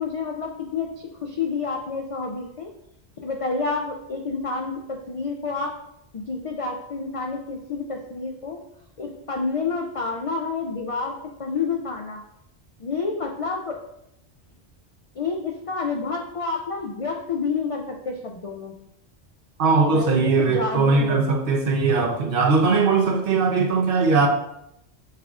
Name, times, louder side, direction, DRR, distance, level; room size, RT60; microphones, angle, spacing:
voice 1, 0.0-2.7 3.2-5.7 6.1-8.6 9.0-11.1 11.4-12.2 12.8-13.8 15.2-18.7 19.9-21.3, left 4 dB, 60° left, 1 dB, 0.3 m, -29 dB
voice 2, 19.6-24.3, right 4 dB, 60° right, 2 dB, 0.8 m, -20 dB
5.5 x 3.6 x 2.4 m, 0.79 s
omnidirectional pair, 1.1 m